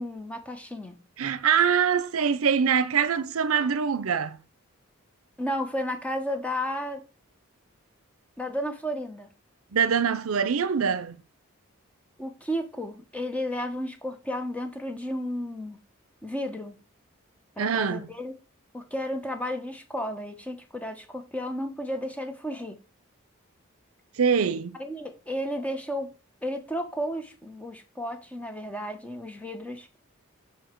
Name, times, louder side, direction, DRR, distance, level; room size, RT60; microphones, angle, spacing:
voice 1, 0.0-1.0 5.4-7.0 8.4-9.3 12.2-15.8 16.2-16.8 17.6-18.3 18.7-22.8 24.8-26.1 26.4-29.9, equal, 5° left, 0.9 m, -33 dB
voice 2, 1.2-4.4 9.7-11.2 17.6-18.1 24.2-24.8, right 6 dB, 80° right, 0.6 m, -24 dB
7.1 x 4.6 x 4.5 m
head